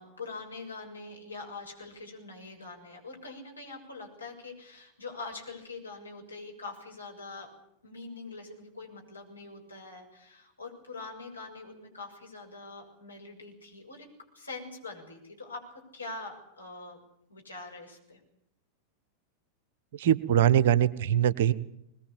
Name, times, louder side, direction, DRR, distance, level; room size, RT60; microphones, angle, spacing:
voice 1, 0.0-7.5 7.8-14.1 14.3-17.0 17.3-18.2, left 3 dB, 80° left, 1 dB, 7.0 m, -44 dB
voice 2, 19.9-21.5, right 10 dB, 55° right, 17 dB, 1.1 m, -22 dB
22.5 x 20.5 x 8.7 m, 0.80 s
figure-of-eight pair, 90°, 0 cm